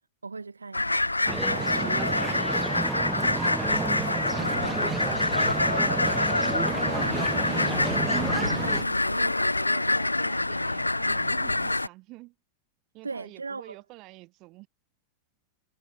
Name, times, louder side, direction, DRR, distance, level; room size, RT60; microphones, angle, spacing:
voice 1, 0.2-1.2 1.8-2.1 3.2-3.5 4.3-4.8 13.0-13.8, right 4 dB, 80° right, 5.2 m, -39 dB
sound 1, 0.7-11.9, left 2 dB, 85° left, 1.0 m, -26 dB
sound 2, 1.3-8.8, right 3 dB, 10° right, 1.3 m, -31 dB
voice 2, 5.3-5.9 6.8-7.9 8.2-12.4 12.9-14.7, right 22 dB, 40° right, 3.7 m, -47 dB
figure-of-eight pair, 90°, 0 cm